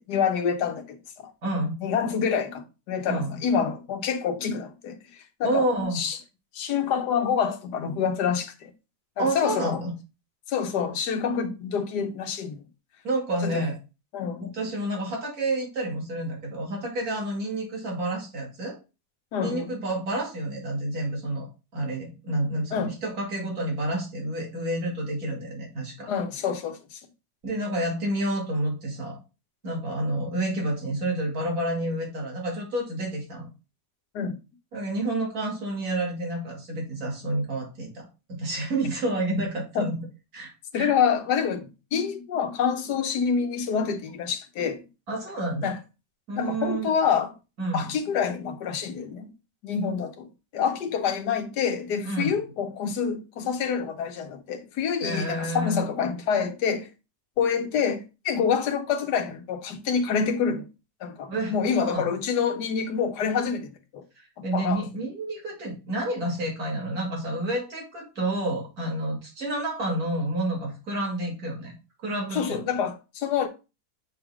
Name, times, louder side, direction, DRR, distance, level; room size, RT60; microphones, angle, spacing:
voice 1, 0.0-1.3 1.8-5.6 5.9-6.2 6.5-8.7 9.2-9.8 10.5-12.6 13.4-13.6 14.1-14.6 19.3-19.7 22.7-22.9 26.1-27.0 34.1-34.4 39.7-39.9 40.7-44.8 45.6-45.8 46.4-47.3 47.7-49.3 49.6-56.9 57.4-60.7 61.0-64.0 64.4-64.8 72.3-73.5, left 7 dB, 80° left, 1.4 m, -27 dB
voice 2, 1.4-1.8 3.1-3.4 5.4-6.0 9.2-9.9 13.0-13.8 14.4-18.8 19.4-21.5 21.7-26.1 27.4-29.2 29.6-33.5 34.7-38.0 38.3-39.9 40.3-40.9 45.1-45.7 46.3-46.9 47.6-47.9 52.0-52.3 55.0-55.8 61.3-61.5 61.8-62.1 64.2-71.7 72.0-72.6, right 1 dB, 65° right, 2.7 m, -29 dB
7.6 x 3.6 x 3.4 m
omnidirectional pair, 1.7 m